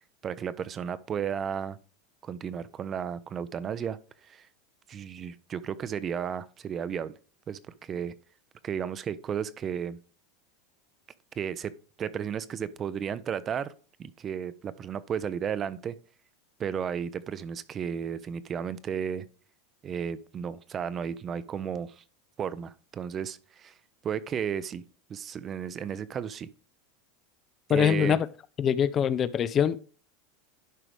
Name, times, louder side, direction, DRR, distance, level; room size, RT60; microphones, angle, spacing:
voice 1, 0.2-1.8 2.2-4.0 4.2-4.5 4.9-7.2 7.5-8.1 8.6-10.0 11.4-11.7 12.0-13.7 14.0-16.0 16.6-19.3 19.8-22.0 22.4-23.7 24.0-24.8 25.1-26.5 27.7-28.2, right 8 dB, 30° right, 0.6 m, -33 dB
voice 2, 27.7-28.3 28.6-29.8, left 8 dB, 35° left, 0.4 m, -23 dB
11.0 x 4.9 x 3.3 m
supercardioid pair, 115°, 0 cm